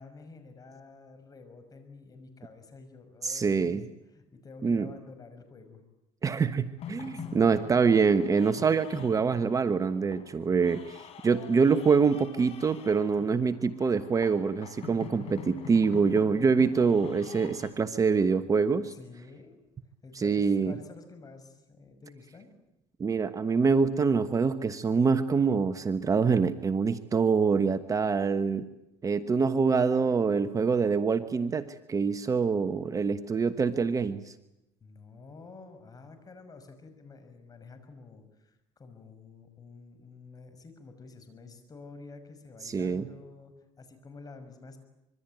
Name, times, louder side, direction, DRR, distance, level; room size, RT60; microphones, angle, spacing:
voice 1, 0.0-3.8 4.1-5.8 7.0-7.4 9.2-9.3 13.2-13.4 18.9-19.6 20.0-22.5 34.8-44.8, left 4 dB, 30° left, 9 dB, 6.0 m, -49 dB
voice 2, 3.2-3.8 4.6-4.9 6.2-18.9 20.1-20.7 23.0-28.7 29.0-34.3 42.6-43.1, right 5 dB, 25° right, 10 dB, 1.2 m, -25 dB
sound 1, 6.8-17.7, left 8 dB, 55° left, 4.4 m, -46 dB
25.5 x 23.0 x 9.1 m, 0.90 s
cardioid pair, 110°, 12 cm